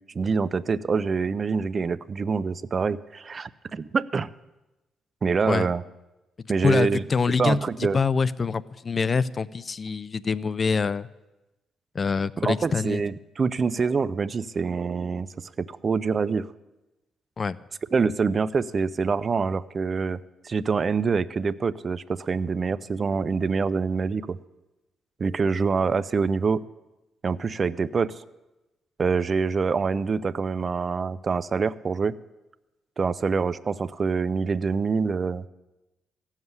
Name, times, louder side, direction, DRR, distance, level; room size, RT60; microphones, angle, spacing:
voice 1, 0.1-4.3 5.2-5.8 6.5-7.0 7.4-8.0 12.4-16.5 17.9-20.2 20.4-24.4 25.2-26.6 27.2-28.2 29.0-32.2 33.0-35.5, right 5 dB, 40° right, 17 dB, 0.5 m, -25 dB
voice 2, 6.6-7.6 7.9-11.1 11.9-13.0 17.4-17.6, left 5 dB, 35° left, 19 dB, 0.5 m, -25 dB
16.0 x 7.4 x 9.6 m, 1.0 s
cardioid pair, 90°, 0 cm